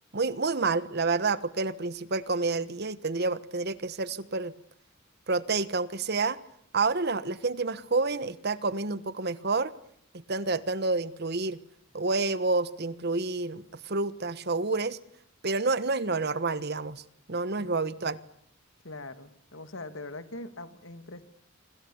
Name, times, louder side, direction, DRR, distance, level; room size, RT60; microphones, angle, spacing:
voice 1, 0.1-4.5 5.3-6.4 6.7-9.7 10.3-11.6 11.9-15.0 15.4-17.0 17.3-18.2, right 3 dB, 55° right, 15 dB, 1.3 m, -29 dB
voice 2, 18.8-21.2, left 2 dB, 75° left, 11 dB, 2.2 m, -42 dB
29.5 x 25.5 x 7.1 m, 0.68 s
head